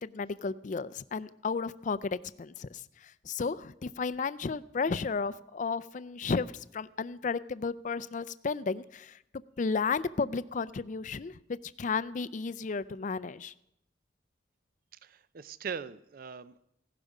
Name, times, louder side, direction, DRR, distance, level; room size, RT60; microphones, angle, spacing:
voice 1, 0.0-9.2 9.6-13.5, left 4 dB, 40° left, 16 dB, 0.4 m, -33 dB
voice 2, 15.0-16.6, right 6 dB, 50° right, 16 dB, 0.5 m, -41 dB
16.0 x 11.5 x 4.9 m, 0.80 s
head